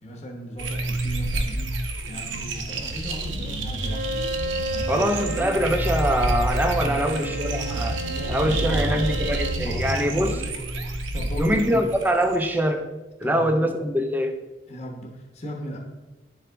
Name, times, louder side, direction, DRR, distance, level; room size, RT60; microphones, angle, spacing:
voice 1, 0.0-1.8 2.1-4.3 4.7-5.1 5.4-5.6 6.8-9.2 9.6-10.2 11.1-11.9 13.2-13.7 14.7-15.8, equal, 35° left, 0 dB, 0.9 m, -36 dB
sound 1, 0.6-12.5, right 1 dB, 90° right, 0.8 m, -28 dB
Bowed string instrument, 3.8-9.7, right 1 dB, 60° right, 0.9 m, -33 dB
voice 2, 4.9-7.9 8.3-10.3 11.4-12.9 13.2-14.4, equal, 10° right, 6 dB, 0.4 m, -23 dB
10.5 x 3.9 x 3.4 m, 1.1 s
head